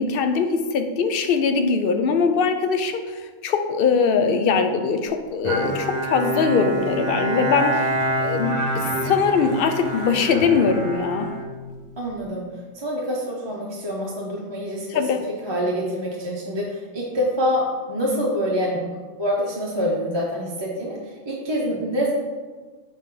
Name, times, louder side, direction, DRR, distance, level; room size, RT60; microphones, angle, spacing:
voice 1, 0.0-7.9 8.2-11.3 14.9-15.2, left 5 dB, 60° left, 7 dB, 0.7 m, -21 dB
Bowed string instrument, 5.4-12.1, right 1 dB, 55° right, 1.0 m, -27 dB
voice 2, 12.0-12.5 12.7-18.8 19.2-22.1, equal, 25° right, -3 dB, 0.7 m, -26 dB
6.2 x 4.0 x 3.8 m, 1.4 s
omnidirectional pair, 1.2 m